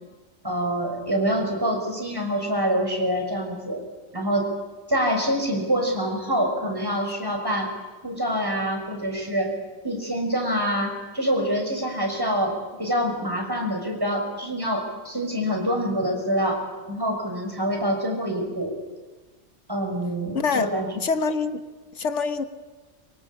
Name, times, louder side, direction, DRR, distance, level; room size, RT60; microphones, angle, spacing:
voice 1, 0.4-3.8 4.1-4.5 4.9-7.7 8.0-9.5 9.8-18.7 19.7-20.9, equal, 20° right, 2 dB, 6.0 m, -26 dB
voice 2, 20.3-20.7 21.0-21.6 21.9-22.4, left 4 dB, 75° left, 9 dB, 1.6 m, -25 dB
24.5 x 24.0 x 8.6 m, 1.3 s
omnidirectional pair, 1.2 m